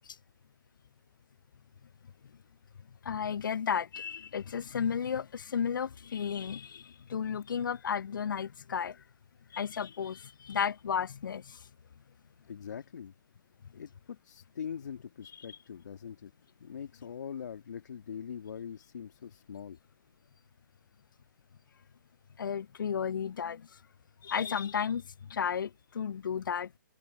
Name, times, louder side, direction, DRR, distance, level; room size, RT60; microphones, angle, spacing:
voice 1, 3.0-9.0 9.5-11.6 22.4-23.7 24.2-26.7, left 7 dB, 85° left, 0.4 m, -33 dB
voice 2, 12.5-13.1 13.7-16.3 16.6-19.8, left 7 dB, 60° left, 2.4 m, -42 dB
hypercardioid pair, 160°, 11 cm